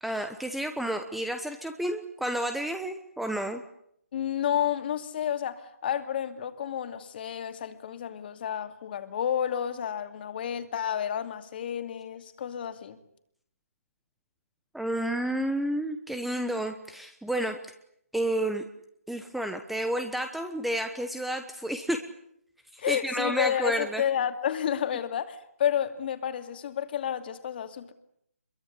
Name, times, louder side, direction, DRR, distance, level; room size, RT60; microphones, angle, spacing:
voice 1, 0.0-3.6 14.7-17.6 18.1-18.6 19.1-22.1 22.7-24.0, right 1 dB, ahead, 7 dB, 1.1 m, -30 dB
voice 2, 4.1-13.0 22.8-27.9, left 9 dB, 40° left, 8 dB, 2.6 m, -30 dB
26.5 x 23.0 x 8.4 m, 0.72 s
figure-of-eight pair, 150°, 8 cm